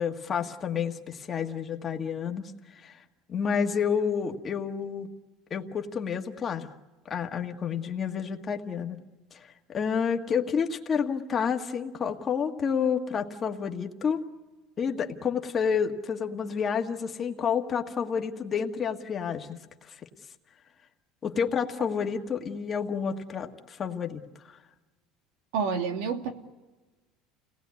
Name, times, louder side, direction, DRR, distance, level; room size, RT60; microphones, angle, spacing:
voice 1, 0.0-3.0 3.3-5.1 5.5-6.7 7.1-9.0 9.3-14.2 14.8-20.0 21.2-24.2 24.5-24.6, left 6 dB, 25° left, 1.7 m, -30 dB
voice 2, 25.5-26.3, right 6 dB, 85° right, 2.5 m, -28 dB
30.0 x 19.5 x 9.7 m
cardioid pair, 165°, 0 cm